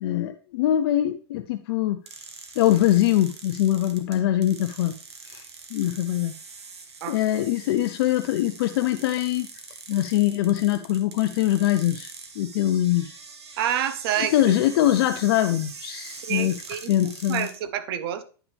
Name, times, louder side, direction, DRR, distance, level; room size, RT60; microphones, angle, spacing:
voice 1, 0.0-2.0 2.6-4.9 5.2-5.4 5.7-6.3 7.1-9.5 9.9-13.2 14.3-16.6 16.9-17.5, left 13 dB, 65° left, 0.5 m, -23 dB
sound 1, 2.1-17.6, right 5 dB, 85° right, 1.4 m, -43 dB
voice 2, 13.6-14.5 16.2-18.2, right 10 dB, 65° right, 1.0 m, -28 dB
9.6 x 5.9 x 3.4 m
hypercardioid pair, 110°, 14 cm